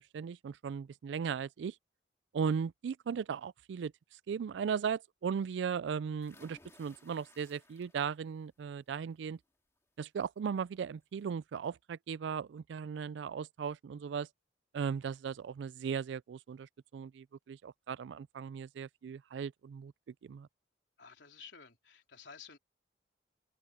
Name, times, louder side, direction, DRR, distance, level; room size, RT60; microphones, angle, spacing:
voice 1, 0.0-1.7 2.3-3.9 4.3-9.4 10.0-14.3 14.7-19.9 20.2-20.5, right 6 dB, 90° right, 0.3 m, -37 dB
sound 1, 6.2-8.3 8.7-9.1 10.5-10.6 11.0-11.1, left 2 dB, 15° left, 2.6 m, -61 dB
voice 2, 21.0-22.6, left 6 dB, 90° left, 4.0 m, -53 dB
head